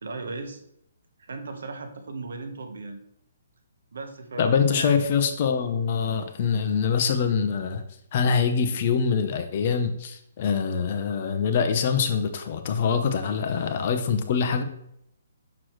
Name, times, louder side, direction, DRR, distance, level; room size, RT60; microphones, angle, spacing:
voice 1, 0.0-0.6 1.2-3.0 3.9-5.0 5.9-6.0, right 3 dB, 75° right, 6 dB, 1.1 m, -36 dB
voice 2, 4.4-7.8 8.1-14.6, left 6 dB, 35° left, 7 dB, 0.7 m, -24 dB
6.4 x 6.0 x 3.1 m, 0.76 s
hypercardioid pair, 170°, 0 cm